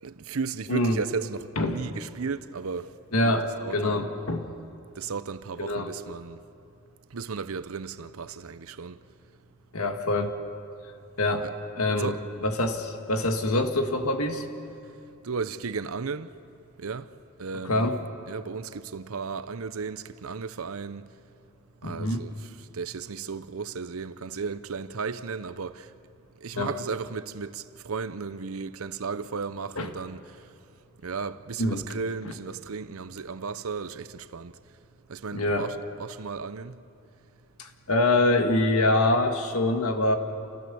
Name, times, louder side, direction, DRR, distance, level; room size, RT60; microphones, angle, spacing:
voice 1, 0.0-2.9 3.2-3.3 3.6-4.0 4.9-6.4 7.1-9.0 11.4-11.5 11.9-12.3 15.2-16.3 16.8-17.1 17.4-18.0 18.3-21.1 21.8-25.9 26.4-30.5 31.0-34.5 35.1-36.8, right 5 dB, 80° right, 0.7 m, -35 dB
voice 2, 0.7-1.0 1.6-1.8 3.1-4.5 5.6-5.9 9.7-10.3 11.2-11.5 11.8-12.1 12.4-14.5 17.6-18.0 21.8-22.2 26.6-26.7 29.8-29.9 31.6-31.8 35.3-35.7 37.6-40.2, left 2 dB, 90° left, 1.8 m, -25 dB
28.5 x 15.5 x 7.0 m
head